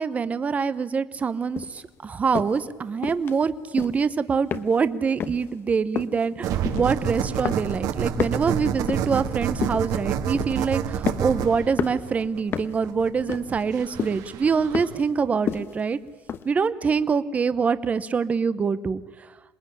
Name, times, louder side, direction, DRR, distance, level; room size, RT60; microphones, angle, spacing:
voice 1, 0.0-16.0 16.4-19.0, right 5 dB, 20° right, 14 dB, 0.9 m, -25 dB
sound 1, 1.6-1.8 2.3-2.6 3.0-3.4 3.7-4.1 4.5-4.9 5.2-5.5 6.0-6.3 6.7-7.1 7.5-7.9 8.2-9.2 9.6-10.0 10.3-10.6 11.1-11.4 11.8-12.1 12.5-12.8 13.3-13.7 14.0-14.3 14.7-15.1 15.5-15.8 16.3-16.4, left 8 dB, 35° left, 1.1 m, -30 dB
sound 2, 6.4-15.0, right 8 dB, 65° right, 2.0 m, -29 dB
27.0 x 21.0 x 10.0 m, 1.2 s
cardioid pair, 175°, 7 cm